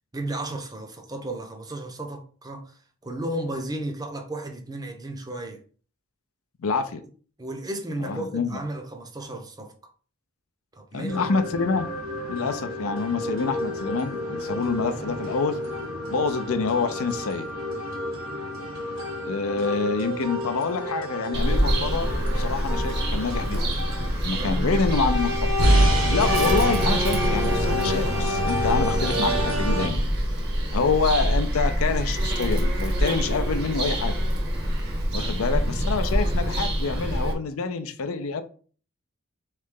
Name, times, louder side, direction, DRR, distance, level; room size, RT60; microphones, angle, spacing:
voice 1, 0.1-5.6 7.4-9.7 10.7-11.2 24.3-25.1 35.1-35.3, right 1 dB, 20° right, 0.6 m, -34 dB
voice 2, 6.6-7.0 8.0-8.6 10.9-11.9 12.3-15.6 16.1-17.5 19.2-23.8 24.2-25.3 26.1-30.0 30.7-34.2 35.1-38.4, left 4 dB, 80° left, 0.5 m, -27 dB
sound 1, 11.1-29.9, equal, 80° right, 1.0 m, -28 dB
Bird vocalization bird call bird song, 21.3-37.3, equal, 50° right, 0.9 m, -25 dB
3.7 x 3.2 x 3.7 m
head